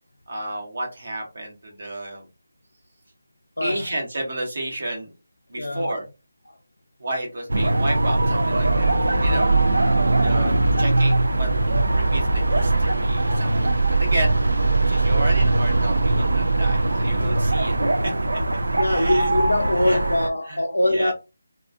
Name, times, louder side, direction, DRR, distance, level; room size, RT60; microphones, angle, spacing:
voice 1, 0.3-2.2 3.6-5.1 5.5-6.0 7.0-9.5 10.2-11.5 11.9-14.4 14.9-17.8 18.0-18.1 18.9-19.3 19.9-20.0 20.4-20.6 20.9-21.1, right 1 dB, 60° right, 0.9 m, -31 dB
voice 2, 5.6-5.9 18.8-21.1, left 1 dB, 90° left, 0.4 m, -22 dB
sound 1, 7.5-20.3, right 2 dB, 80° right, 0.3 m, -20 dB
2.5 x 2.3 x 2.3 m
figure-of-eight pair, 160°, 0 cm